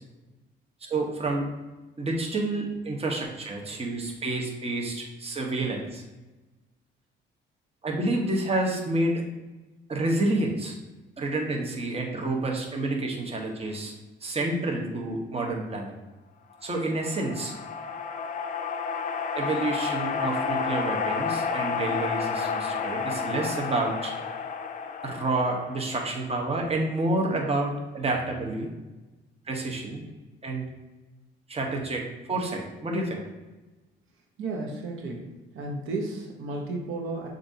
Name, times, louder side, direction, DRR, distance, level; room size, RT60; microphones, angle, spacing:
voice 1, 0.8-1.5 2.0-6.0 7.8-9.2 9.9-10.8 11.2-13.9 14.2-16.0 16.6-17.5 19.3-24.1 25.0-28.7 29.5-30.0 30.4-30.7 31.5-33.2, right 2 dB, 30° right, 0 dB, 1.0 m, -29 dB
sound 1, 16.6-26.2, left 6 dB, 40° left, 0.4 m, -31 dB
voice 2, 34.4-35.3 35.5-37.3, right 2 dB, 90° right, 0 dB, 0.9 m, -33 dB
6.8 x 2.6 x 2.7 m, 1.1 s
cardioid pair, 90°, 20 cm